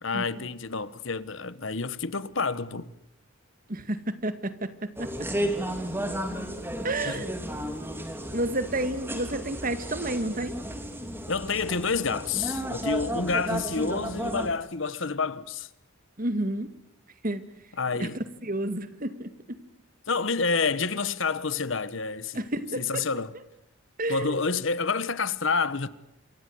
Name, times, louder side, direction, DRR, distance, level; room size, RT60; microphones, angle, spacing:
voice 1, 0.0-2.9 7.1-7.2 11.3-15.7 17.8-18.2 20.1-22.5 22.8-23.3 24.1-25.9, left 4 dB, 65° left, 1.2 m, -28 dB
voice 2, 3.7-5.3 6.8-7.4 8.3-10.6 16.2-16.7 17.2-17.4 18.0-19.6 22.3-23.0 24.0-24.4, right 1 dB, 40° right, 2.0 m, -31 dB
sound 1, 5.0-14.5, equal, 10° right, 3.0 m, -33 dB
28.0 x 24.5 x 7.9 m
head